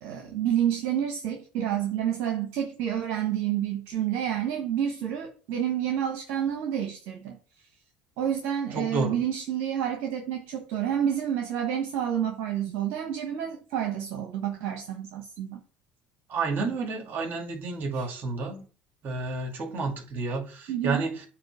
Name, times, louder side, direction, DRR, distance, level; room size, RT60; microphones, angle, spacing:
voice 1, 0.0-7.4 8.2-15.6 17.9-18.1 20.7-21.1, right 10 dB, 70° right, 1.1 m, -29 dB
voice 2, 8.7-9.2 16.3-18.6 19.0-21.1, right 3 dB, 50° right, 2.3 m, -30 dB
8.4 x 2.9 x 6.0 m
supercardioid pair, 80°, 4 cm